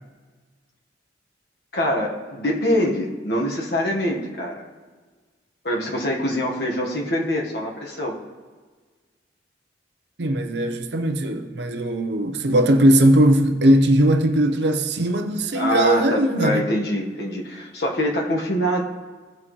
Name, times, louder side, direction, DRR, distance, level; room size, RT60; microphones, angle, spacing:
voice 1, 1.7-4.6 5.6-8.2 15.5-18.8, equal, 60° left, 1.4 m, -24 dB
voice 2, 10.2-16.7, right 1 dB, 70° right, 0.7 m, -19 dB
17.0 x 5.9 x 3.1 m
head